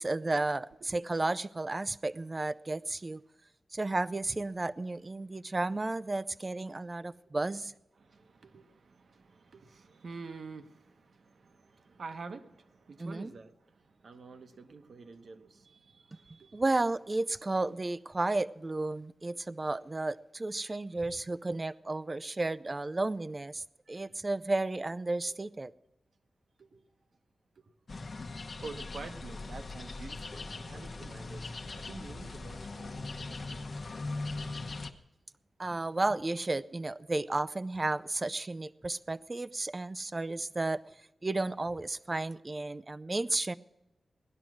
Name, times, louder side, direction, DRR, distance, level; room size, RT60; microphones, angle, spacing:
voice 1, 0.0-3.2 3.7-7.7 13.0-13.3 16.5-25.7 35.6-40.8 41.2-43.5, right 2 dB, 25° right, 0.4 m, -33 dB
voice 2, 8.0-16.6 23.9-24.2 26.6-26.8 27.6-27.7 28.6-33.7 34.4-34.6, right 4 dB, 65° right, 1.1 m, -48 dB
sound 1, 27.9-34.9, left 3 dB, 50° left, 1.0 m, -40 dB
18.0 x 11.5 x 6.2 m
wide cardioid pair, 115°, 0 cm